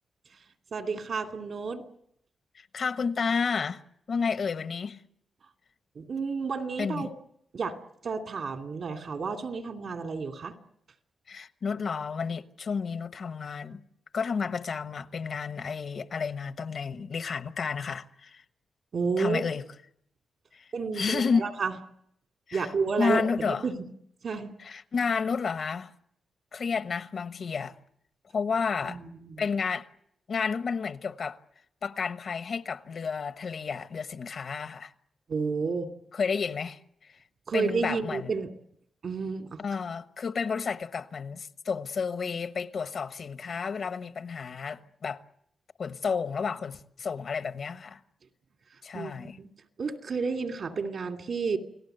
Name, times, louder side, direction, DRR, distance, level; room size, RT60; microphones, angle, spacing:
voice 1, 0.7-1.8 5.9-7.1 7.5-10.5 18.9-19.4 20.7-21.7 22.5-23.2 23.6-23.8 24.2-24.5 28.9-29.4 35.3-35.9 37.5-38.5 39.0-39.6 48.9-49.5 49.8-51.6, right 4 dB, 55° right, 2.7 m, -31 dB
voice 2, 2.5-3.8 4.1-5.0 6.8-7.1 11.3-13.8 14.1-18.4 19.2-19.6 20.5-20.7 20.9-21.4 22.5-22.7 23.0-23.6 24.6-25.9 26.5-27.7 28.3-29.0 29.4-29.9 30.3-31.4 31.8-34.9 36.1-36.8 37.5-38.3 39.6-45.2 45.8-48.0 48.8-49.4, left 5 dB, 55° left, 1.2 m, -31 dB
29.0 x 19.0 x 8.0 m
cardioid pair, 115°, 0 cm